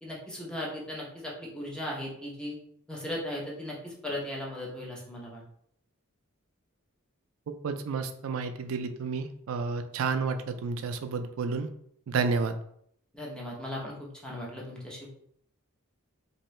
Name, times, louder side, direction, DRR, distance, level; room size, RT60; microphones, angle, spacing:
voice 1, 0.0-2.6 2.9-5.4 13.1-15.1, left 1 dB, 5° left, -3 dB, 0.7 m, -37 dB
voice 2, 7.6-11.7 12.1-12.6, right 4 dB, 70° right, 8 dB, 0.4 m, -30 dB
3.0 x 2.6 x 3.1 m, 0.68 s
head